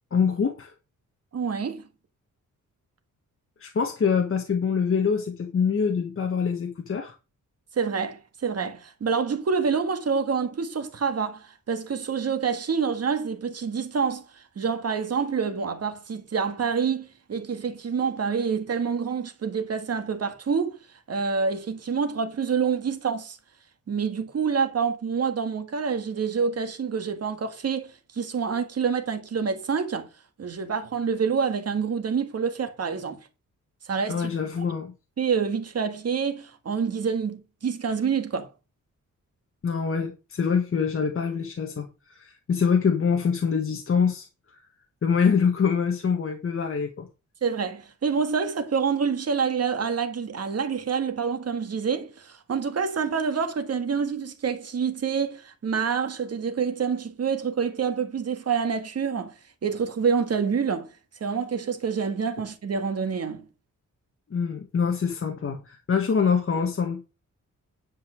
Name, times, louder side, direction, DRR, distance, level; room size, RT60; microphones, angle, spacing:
voice 1, 0.1-0.7 3.6-7.1 34.1-34.9 39.6-44.3 45.0-47.1 64.3-67.1, left 6 dB, 40° left, 1.4 m, -25 dB
voice 2, 1.3-1.8 7.8-14.2 14.5-20.8 21.1-23.4 23.9-30.1 30.4-33.2 33.8-34.3 35.2-38.5 47.4-59.3 59.6-60.9 61.2-63.4, right 6 dB, 50° right, 1.8 m, -27 dB
10.5 x 5.4 x 6.2 m
wide cardioid pair, 150°, 32 cm